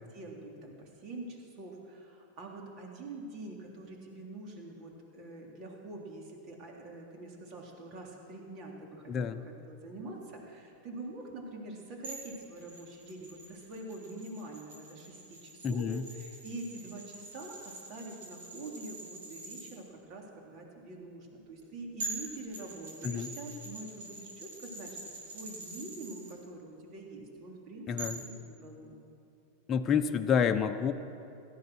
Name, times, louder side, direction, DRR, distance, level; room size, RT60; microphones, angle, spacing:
voice 1, 0.0-29.0, right 2 dB, 45° right, 0 dB, 3.4 m, -45 dB
voice 2, 9.1-9.4 15.6-16.0 23.0-23.3 27.9-28.2 29.7-30.9, left 7 dB, 30° left, 6 dB, 0.8 m, -28 dB
sound 1, 12.0-19.7 21.6-21.7 22.0-26.3 28.0-28.3, right 2 dB, 65° right, 4.4 m, -45 dB
17.0 x 13.5 x 6.3 m, 2.7 s
hypercardioid pair, 100°, 0 cm